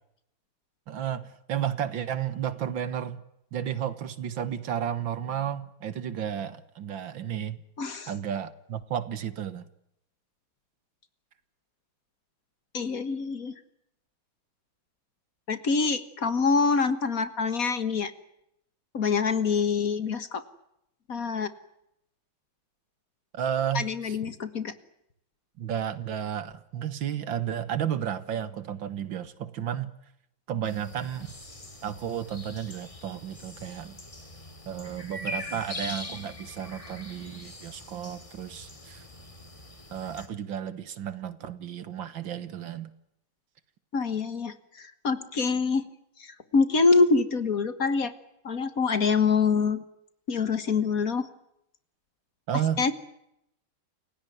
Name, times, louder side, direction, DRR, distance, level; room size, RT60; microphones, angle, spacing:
voice 1, 0.9-3.2 3.5-7.6 8.1-9.7 23.3-24.2 25.6-29.9 30.5-31.3 31.8-34.0 34.7-39.0 39.9-42.9 52.5-52.8, right 9 dB, 75° right, 15 dB, 2.1 m, -32 dB
voice 2, 7.8-8.1 12.7-13.5 15.5-18.1 18.9-20.4 21.1-21.5 23.7-24.7 43.9-45.8 46.2-48.1 48.4-49.8 50.3-51.3 52.8-52.9, left 4 dB, 45° left, 13 dB, 1.8 m, -25 dB
sound 1, 30.6-40.3, left 1 dB, 15° left, 2.4 m, -42 dB
29.0 x 17.0 x 9.4 m, 0.79 s
omnidirectional pair, 2.2 m